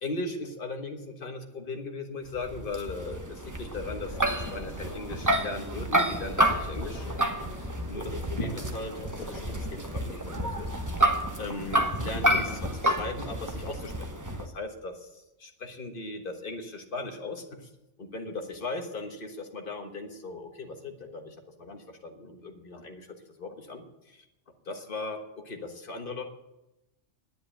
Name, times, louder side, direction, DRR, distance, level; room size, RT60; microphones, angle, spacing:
voice 1, 0.0-7.1 7.6-10.7 11.4-14.1 14.4-17.7 18.0-23.1 23.4-24.2 24.6-26.2, left 2 dB, 45° left, 4 dB, 1.5 m, -38 dB
sound 1, 2.3-14.4, right 1 dB, 15° right, 0.9 m, -29 dB
sound 2, 4.1-12.7, left 1 dB, 30° left, 1.3 m, -43 dB
10.5 x 7.8 x 8.8 m, 0.93 s
omnidirectional pair, 1.3 m